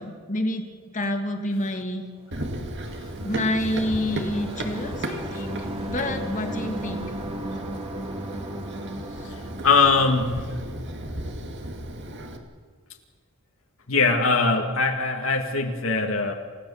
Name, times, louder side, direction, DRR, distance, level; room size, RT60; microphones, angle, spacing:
voice 1, 0.0-2.0 3.2-7.1, left 1 dB, 35° left, 4 dB, 2.3 m, -28 dB
Run, 2.3-12.4, right 1 dB, 55° right, 2.3 m, -35 dB
sound 1, 2.4-11.1, right 1 dB, 25° right, 2.6 m, -37 dB
voice 2, 9.6-10.4 13.9-16.3, left 4 dB, 70° left, 3 dB, 2.0 m, -21 dB
29.0 x 16.5 x 7.2 m, 1.5 s
head